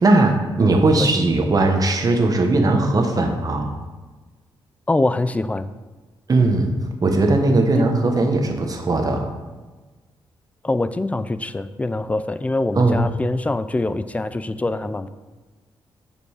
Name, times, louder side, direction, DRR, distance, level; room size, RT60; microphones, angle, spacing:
voice 1, 0.0-3.7 6.3-6.7 7.0-9.3 12.8-13.0, right 2 dB, 40° right, 4 dB, 1.2 m, -18 dB
voice 2, 4.9-5.7 7.7-7.9 10.6-15.1, left 2 dB, 15° left, 13 dB, 0.4 m, -24 dB
6.9 x 5.4 x 4.8 m, 1.3 s
cardioid pair, 80°, 10 cm